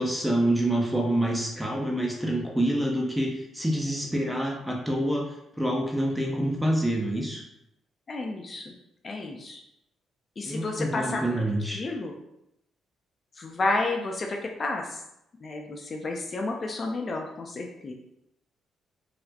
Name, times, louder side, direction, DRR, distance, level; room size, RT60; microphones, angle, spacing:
voice 1, 0.0-7.5 10.4-11.8, right 1 dB, 5° right, -1 dB, 0.6 m, -27 dB
voice 2, 8.1-8.7 9.0-9.6 10.4-11.5 11.7-12.1 13.4-15.0 15.4-17.9, left 2 dB, 40° left, 2 dB, 0.4 m, -31 dB
4.0 x 2.0 x 2.8 m, 0.82 s
cardioid pair, 90°, 0 cm